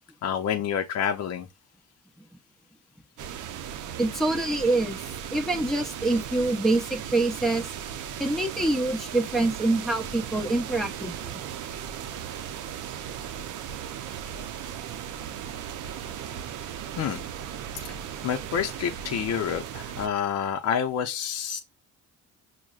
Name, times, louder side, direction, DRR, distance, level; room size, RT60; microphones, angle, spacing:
voice 1, 0.2-1.5 17.0-17.2 17.7-18.0 18.2-21.6, left 8 dB, 55° left, 0.6 m, -28 dB
sound 1, 3.2-20.1, right 9 dB, 80° right, 0.5 m, -37 dB
voice 2, 4.0-5.0 5.3-7.7 8.2-11.3, right 2 dB, ahead, 0.7 m, -25 dB
6.1 x 2.1 x 2.3 m
cardioid pair, 90°, 30 cm